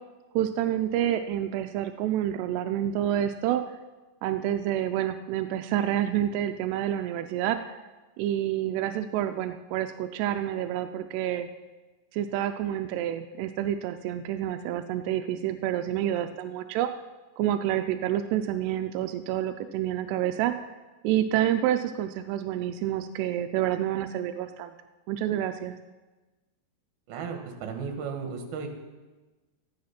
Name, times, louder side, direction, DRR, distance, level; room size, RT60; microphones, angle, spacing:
voice 1, 0.3-3.6 4.2-7.8 8.2-11.5 12.1-16.9 17.4-20.7 21.0-24.7 25.1-25.8, right 11 dB, 85° right, 7 dB, 2.4 m, -28 dB
voice 2, 27.1-28.7, right 5 dB, 65° right, 4 dB, 3.0 m, -35 dB
14.0 x 10.5 x 5.8 m, 1.2 s
omnidirectional pair, 5.4 m